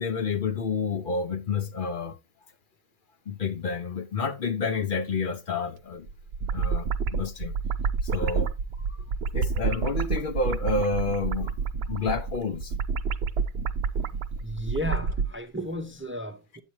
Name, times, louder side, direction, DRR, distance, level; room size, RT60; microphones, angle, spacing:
voice 1, 0.0-2.2 3.3-6.1 6.5-7.5 8.0-8.5 8.9-9.0 9.3-11.6 11.8-12.8, left 4 dB, 55° left, 0.8 m, -29 dB
sound 1, 6.1-15.3, right 5 dB, 75° right, 0.9 m, -28 dB
voice 2, 14.4-16.6, equal, 15° right, 0.7 m, -34 dB
8.9 x 8.4 x 3.0 m
omnidirectional pair, 1.1 m